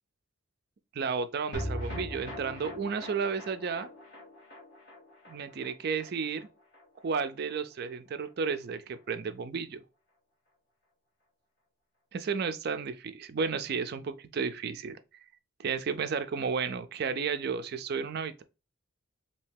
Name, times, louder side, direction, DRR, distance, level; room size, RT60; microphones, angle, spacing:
voice 1, 0.9-3.9 5.3-6.5 7.0-9.8 12.1-15.0 15.6-18.4, right 5 dB, 45° right, 0.3 m, -32 dB
sound 1, 1.5-8.0 8.2-8.3 8.6-8.7, equal, 55° left, 1.0 m, -42 dB
3.2 x 2.7 x 3.3 m
head